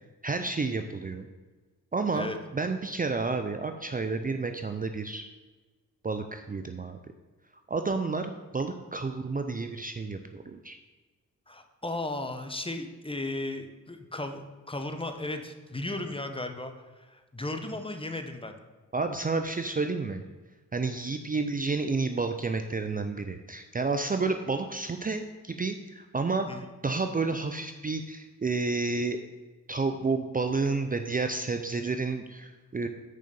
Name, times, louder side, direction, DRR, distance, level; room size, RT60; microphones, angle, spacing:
voice 1, 0.2-1.3 1.9-5.3 6.0-7.0 7.7-10.8 18.9-20.2 20.7-26.5 26.8-29.2 29.7-32.9, right 3 dB, 25° right, 7 dB, 0.6 m, -30 dB
voice 2, 11.5-18.5 26.5-26.7, left 2 dB, 15° left, 6 dB, 1.1 m, -35 dB
6.6 x 5.1 x 7.0 m, 1.3 s
cardioid pair, 55°, 34 cm